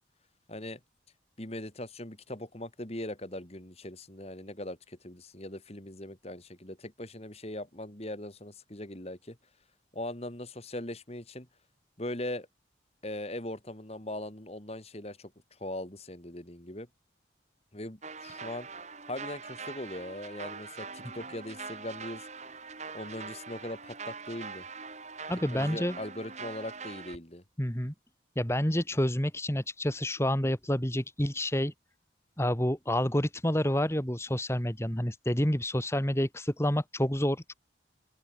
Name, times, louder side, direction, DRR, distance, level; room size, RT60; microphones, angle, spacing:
voice 1, 0.5-0.8 1.4-9.4 9.9-11.5 12.0-12.5 13.0-15.3 15.6-16.9 17.7-18.7 19.1-22.3 22.9-24.6 25.5-27.4, left 1 dB, 35° left, 2.8 m, -40 dB
sound 1, 18.0-27.2, right 4 dB, 40° right, 6.3 m, -43 dB
voice 2, 25.3-26.0 27.6-27.9 28.4-31.7 32.4-37.5, left 1 dB, 15° left, 2.4 m, -28 dB
open air
head